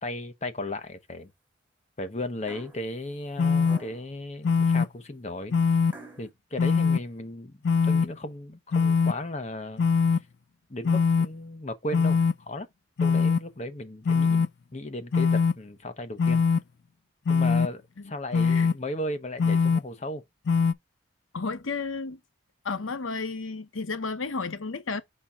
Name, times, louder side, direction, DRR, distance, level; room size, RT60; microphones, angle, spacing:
voice 1, 0.0-1.3 2.0-5.6 6.2-9.9 10.7-12.7 13.0-14.4 14.7-16.4 17.3-20.2, left 1 dB, 35° left, 1.0 m, -35 dB
sound 1, 2.5-2.9 3.6-4.1 5.9-6.3, right 2 dB, 10° right, 2.6 m, -46 dB
sound 2, 3.4-3.8 4.4-4.9 5.5-5.9 6.6-7.0 7.6-8.1 8.7-9.1 9.8-10.2 10.8-11.3 11.9-12.3 13.0-13.4 14.1-14.5 15.1-15.5 16.2-16.6 17.3-17.7 18.3-18.7 19.4-19.8 20.5-20.7, left 5 dB, 55° left, 0.4 m, -22 dB
voice 2, 21.3-22.2 22.6-25.0, left 4 dB, 75° left, 0.9 m, -32 dB
6.1 x 4.4 x 3.6 m
head